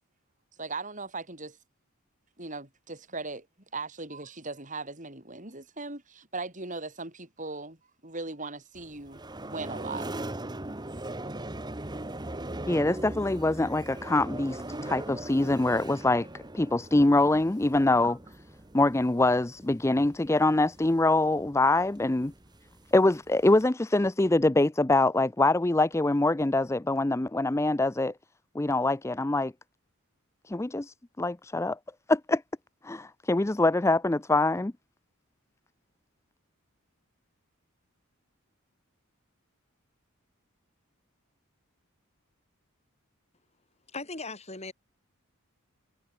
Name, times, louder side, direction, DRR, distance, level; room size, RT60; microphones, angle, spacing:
voice 1, 0.6-1.6 2.4-3.5 3.7-7.8 8.0-10.1 11.7-11.8, right 3 dB, 35° right, 7.3 m, -38 dB
sound 1, 8.7-23.6, right 1 dB, 20° right, 1.4 m, -40 dB
voice 2, 12.7-18.2 18.7-22.3 22.9-28.1 28.5-29.5 30.5-31.8 32.1-32.4 32.8-34.7, left 2 dB, 10° left, 0.5 m, -24 dB
voice 3, 43.9-44.7, left 3 dB, 30° left, 7.8 m, -38 dB
head